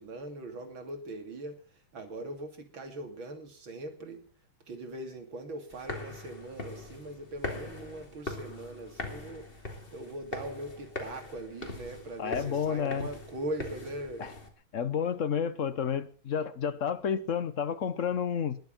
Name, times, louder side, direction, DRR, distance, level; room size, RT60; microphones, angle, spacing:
voice 1, 0.0-4.2 4.7-9.5 9.9-14.3, right 1 dB, 70° right, 3.6 m, -41 dB
sound 1, 5.7-14.5, left 2 dB, 25° left, 2.9 m, -41 dB
voice 2, 12.2-13.1 14.2-14.3 14.7-18.6, left 7 dB, 50° left, 1.0 m, -30 dB
21.0 x 8.2 x 7.6 m
omnidirectional pair, 2.3 m